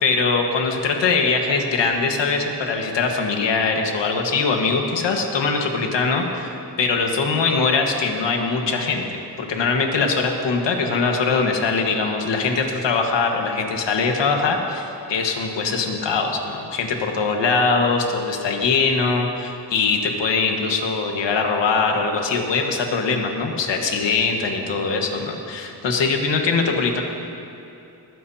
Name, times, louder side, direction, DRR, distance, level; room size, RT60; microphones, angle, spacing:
voice 1, 0.0-27.0, left 4 dB, 90° left, 2 dB, 1.6 m, -22 dB
21.0 x 15.5 x 2.8 m, 2.8 s
wide cardioid pair, 120°, 42 cm